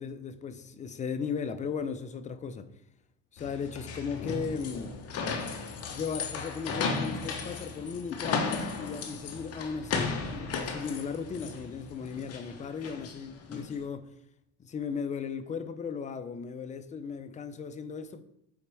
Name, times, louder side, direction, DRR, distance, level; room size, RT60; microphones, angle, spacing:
voice 1, 0.0-2.7 3.3-4.9 5.9-14.1 14.6-18.2, left 6 dB, 20° left, 11 dB, 0.5 m, -36 dB
sound 1, 3.4-13.8, left 4 dB, 45° left, 1.0 m, -35 dB
8.4 x 4.1 x 3.4 m, 0.78 s
supercardioid pair, 110°, 35 cm